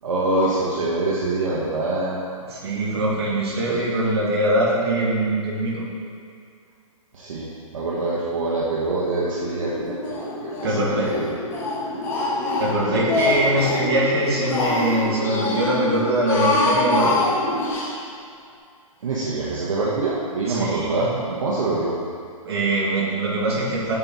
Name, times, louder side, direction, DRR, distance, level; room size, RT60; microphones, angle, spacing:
voice 1, 0.0-2.2 3.7-3.8 7.1-10.0 10.4-11.4 12.9-13.7 19.0-22.0, right 2 dB, 65° right, -6 dB, 1.3 m, -25 dB
voice 2, 2.5-5.9 10.6-11.1 12.6-17.2 20.5-21.1 22.4-23.9, right 1 dB, 45° right, -4 dB, 1.9 m, -22 dB
sound 1, 9.1-17.7, left 1 dB, 30° left, 1.5 m, -31 dB
Speech, 10.0-10.8 11.1-13.9 14.2-15.7 16.1-17.9, left 3 dB, 10° left, 0.7 m, -25 dB
7.5 x 4.1 x 6.1 m, 2.3 s
hypercardioid pair, 160°, 18 cm